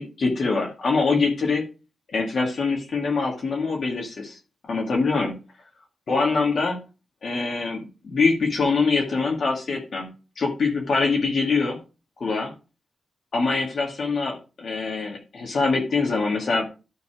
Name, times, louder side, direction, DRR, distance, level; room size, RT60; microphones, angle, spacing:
voice 1, 0.0-1.6 2.1-4.4 4.6-5.3 6.1-6.8 7.2-10.1 10.4-11.8 12.2-12.5 13.3-16.7, left 4 dB, 60° left, 0 dB, 2.3 m, -24 dB
12.0 x 4.1 x 4.9 m, 0.31 s
cardioid pair, 90°, 0 cm